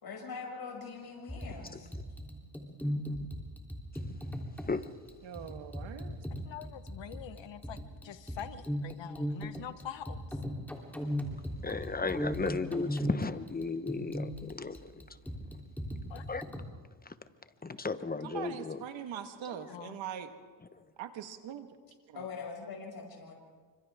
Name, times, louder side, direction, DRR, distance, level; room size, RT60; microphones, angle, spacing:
voice 1, 0.0-1.9 22.1-23.4, left 5 dB, 55° left, -1 dB, 6.6 m, -42 dB
sound 1, 1.3-16.6, equal, 5° left, 3.4 m, -38 dB
voice 2, 5.2-6.2 18.2-20.3 21.0-21.7 22.1-22.3, right 9 dB, 90° right, 7 dB, 1.8 m, -42 dB
voice 3, 6.4-10.2 16.1-16.3 19.7-20.0, left 9 dB, 75° left, 10 dB, 1.4 m, -45 dB
voice 4, 11.6-15.0 16.3-16.4 17.0-17.1 17.6-18.8 19.4-19.9, left 4 dB, 20° left, 11 dB, 1.0 m, -35 dB
29.0 x 25.5 x 3.7 m, 1.5 s
cardioid pair, 90°, 45 cm